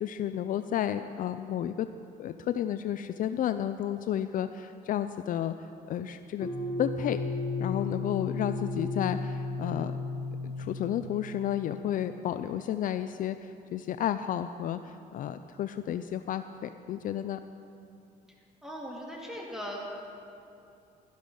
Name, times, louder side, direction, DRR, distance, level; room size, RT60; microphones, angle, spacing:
voice 1, 0.0-1.9 2.2-5.5 5.9-6.5 6.8-7.2 7.6-9.9 10.4-17.4, left 10 dB, 55° left, 10 dB, 0.4 m, -32 dB
sound 1, 6.4-11.6, left 3 dB, 30° left, 1.6 m, -34 dB
voice 2, 18.6-20.0, equal, 5° right, -2 dB, 2.5 m, -39 dB
12.0 x 11.5 x 5.5 m, 2.6 s
cardioid pair, 110°, 17 cm